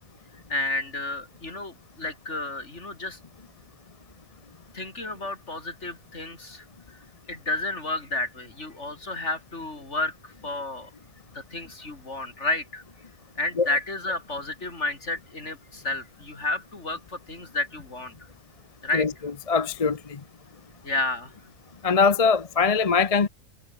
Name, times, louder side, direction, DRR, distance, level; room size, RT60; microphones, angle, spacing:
voice 1, 0.5-3.2 4.7-7.0 7.3-10.9 11.3-12.8 13.4-18.1 18.8-19.1 20.8-21.3, left 2 dB, 55° left, 4.6 m, -31 dB
voice 2, 19.5-20.2 21.8-23.3, left 5 dB, 30° left, 0.8 m, -22 dB
omnidirectional pair, 1.5 m